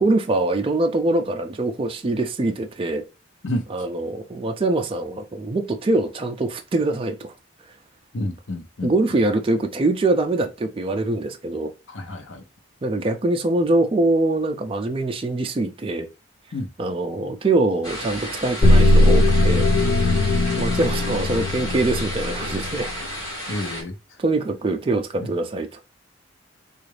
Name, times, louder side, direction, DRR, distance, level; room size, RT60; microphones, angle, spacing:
voice 1, 0.0-3.0 3.7-7.3 8.8-11.7 12.8-16.1 16.8-19.7 20.6-22.9 23.4-23.8 24.2-25.8, right 2 dB, 30° right, 0.4 m, -23 dB
voice 2, 8.1-8.9 11.9-12.4 16.5-16.7 23.5-24.0 25.2-25.3, left 1 dB, 75° left, 0.7 m, -29 dB
sound 1, 17.8-23.8, equal, 20° left, 2.1 m, -33 dB
sound 2, 18.6-22.9, left 1 dB, 50° left, 0.3 m, -18 dB
3.8 x 2.4 x 3.1 m
head